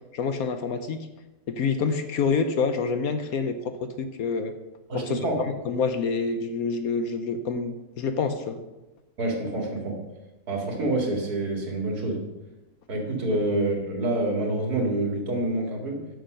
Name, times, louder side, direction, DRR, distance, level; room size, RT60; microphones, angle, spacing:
voice 1, 0.1-1.1 1.5-4.5 4.9-5.2 5.7-8.6 13.3-13.4, left 5 dB, 65° left, 8 dB, 1.1 m, -27 dB
voice 2, 4.9-5.5 9.2-10.0 10.5-12.3 12.9-16.1, right 2 dB, 65° right, 1 dB, 2.5 m, -27 dB
9.4 x 6.5 x 6.4 m, 1.0 s
omnidirectional pair, 1.8 m